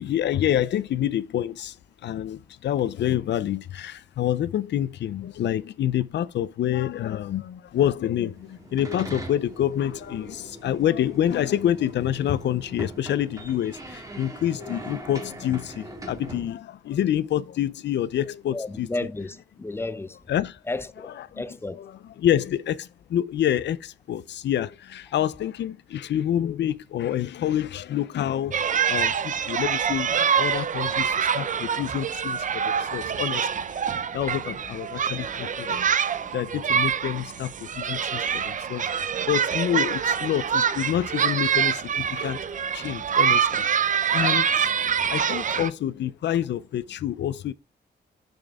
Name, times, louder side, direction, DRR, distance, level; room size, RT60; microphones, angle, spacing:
voice 1, 0.0-1.8 2.0-18.9 20.3-20.6 21.2-21.4 21.7-28.6 28.9-33.5 34.1-42.4 42.7-43.6 44.1-44.7 45.1-47.5, left 11 dB, 85° left, 0.5 m, -27 dB
sound 1, 8.2-16.5, right 2 dB, 20° right, 1.7 m, -41 dB
voice 2, 18.5-20.2 20.7-21.8, left 2 dB, 15° left, 0.5 m, -32 dB
sound 2, 28.5-45.7, right 7 dB, 45° right, 0.5 m, -25 dB
6.4 x 6.2 x 3.5 m
wide cardioid pair, 120°, 18 cm